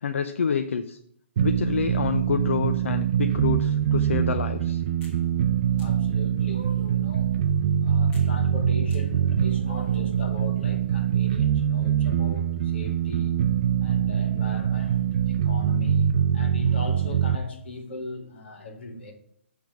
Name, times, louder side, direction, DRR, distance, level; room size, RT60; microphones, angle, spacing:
voice 1, 0.0-1.0 1.4-4.8, left 6 dB, 80° left, 0.6 m, -27 dB
sound 1, 1.4-17.4, right 9 dB, 40° right, 0.5 m, -24 dB
sound 2, 5.0-5.2 5.8-5.9 6.5-7.0 8.1-8.3 8.9-9.0 9.6-10.2, right 1 dB, 20° left, 1.7 m, -44 dB
voice 2, 5.8-7.3 7.8-13.4 13.8-19.1, left 2 dB, 60° left, 2.1 m, -39 dB
9.3 x 3.5 x 6.3 m
hypercardioid pair, 165°, 7 cm